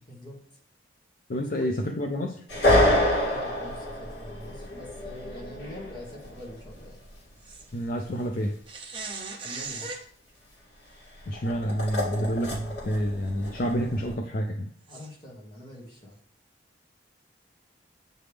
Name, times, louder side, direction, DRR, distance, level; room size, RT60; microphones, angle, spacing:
voice 1, 1.3-2.4 7.7-8.5 11.3-14.7, equal, 50° left, 3 dB, 0.5 m, -28 dB
sound 1, 2.5-7.1 11.2-14.1, left 1 dB, 65° left, 2.5 m, -28 dB
voice 2, 3.3-7.0 9.4-9.9 14.9-16.2, left 1 dB, 25° left, -4 dB, 1.7 m, -44 dB
sound 2, 7.4-7.7 8.7-10.0 11.9-12.0 12.6-12.7 14.9-15.1, right 4 dB, 30° right, 0.7 m, -38 dB
8.8 x 3.3 x 3.4 m, 0.64 s
head